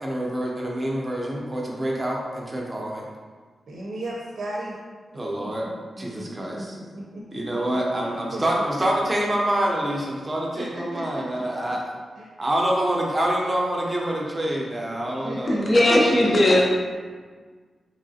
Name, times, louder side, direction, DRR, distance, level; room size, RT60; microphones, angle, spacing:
voice 1, 0.0-3.0 5.1-5.6 6.0-6.8 7.3-11.8 12.4-15.6, right 1 dB, 20° right, -2 dB, 0.6 m, -26 dB
voice 2, 3.7-4.7 5.1-5.5 6.0-7.6 7.9-8.4 8.7-8.8 10.5-11.4 11.7-11.8 12.2-12.3 15.2-16.1, right 1 dB, 90° right, -3 dB, 0.6 m, -35 dB
voice 3, 15.5-16.6, left 1 dB, 35° left, -2 dB, 0.4 m, -18 dB
3.8 x 3.0 x 2.7 m, 1.5 s
wide cardioid pair, 155°, 0 cm